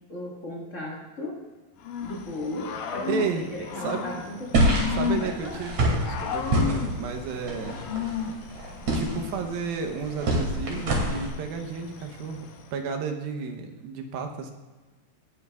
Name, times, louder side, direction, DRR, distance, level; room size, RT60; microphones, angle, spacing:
voice 1, 0.0-1.4 2.0-4.6 5.2-5.6, left 1 dB, 40° left, -3 dB, 1.0 m, -36 dB
Growling / Cricket, 1.8-12.7, left 7 dB, 70° left, 2.0 m, -35 dB
voice 2, 3.0-3.4 3.8-4.2 4.9-7.8 8.9-12.5 12.7-14.5, right 5 dB, 75° right, 5 dB, 2.5 m, -32 dB
sound 1, 4.5-11.3, right 1 dB, 45° right, 3.3 m, -27 dB
20.0 x 9.0 x 2.4 m, 1.3 s
omnidirectional pair, 4.7 m